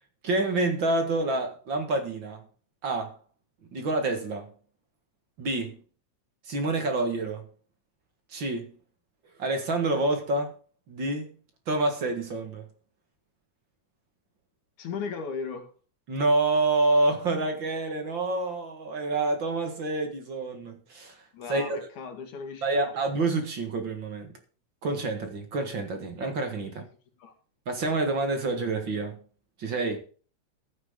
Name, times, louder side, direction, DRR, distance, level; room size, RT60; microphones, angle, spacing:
voice 1, 0.2-2.4 2.8-3.2 3.7-4.5 5.4-5.8 6.5-7.4 8.3-8.7 9.4-10.5 10.9-11.4 11.7-12.6 16.1-21.2 21.5-21.8 22.6-24.3 24.8-26.8 27.7-29.2 29.6-30.0, right 2 dB, 45° right, 2.2 m, -27 dB
voice 2, 14.8-15.7 21.3-22.9 26.6-26.7 27.2-27.3, left 5 dB, 80° left, 3.5 m, -37 dB
14.0 x 9.4 x 3.8 m
omnidirectional pair, 3.4 m